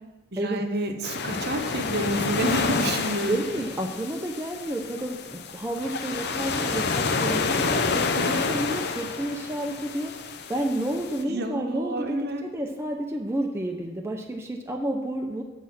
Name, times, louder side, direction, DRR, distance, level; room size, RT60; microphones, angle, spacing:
voice 1, 0.3-3.4 11.3-12.4, right 1 dB, 50° right, 6 dB, 1.0 m, -29 dB
sound 1, 1.0-11.2, left 4 dB, 50° left, 0.7 m, -29 dB
voice 2, 3.3-10.1 10.5-15.4, right 1 dB, 10° right, 2 dB, 0.6 m, -30 dB
8.5 x 7.0 x 6.0 m, 1.2 s
head